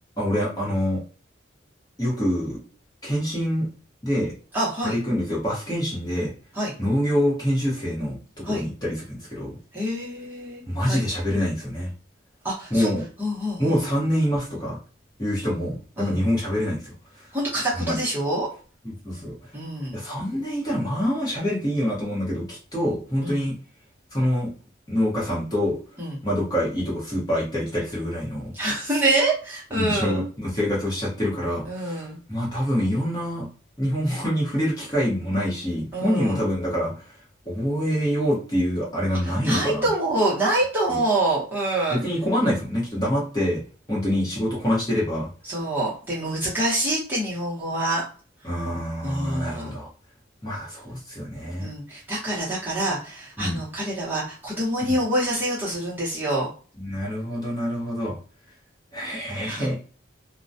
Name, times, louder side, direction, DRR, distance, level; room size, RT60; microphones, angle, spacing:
voice 1, 0.2-1.0 2.0-2.6 3.0-3.7 4.0-4.3 4.8-6.3 6.8-9.5 10.7-11.9 12.7-13.0 13.6-14.8 15.2-16.9 17.8-18.0 18.8-19.3 19.9-23.5 24.1-24.5 24.9-25.8 26.2-28.5 28.8-29.0 29.8-33.5 33.8-36.9 37.5-39.9 40.9-41.0 41.9-43.6 43.9-45.3 48.4-49.9 50.4-51.7 53.4-53.6 54.8-55.0 56.8-58.2 58.9-59.8, equal, 20° left, -6 dB, 0.9 m, -26 dB
voice 2, 4.5-5.0 6.5-6.7 8.4-8.6 9.7-11.0 12.4-12.9 13.2-13.9 16.0-16.2 17.3-18.5 19.5-20.0 23.2-23.5 26.0-26.2 28.5-30.2 31.6-32.2 35.9-36.4 39.2-42.0 45.4-48.0 49.0-49.7 51.6-56.5 59.5-59.7, right 1 dB, 10° right, -7 dB, 0.8 m, -26 dB
2.2 x 2.1 x 2.6 m, 0.39 s
head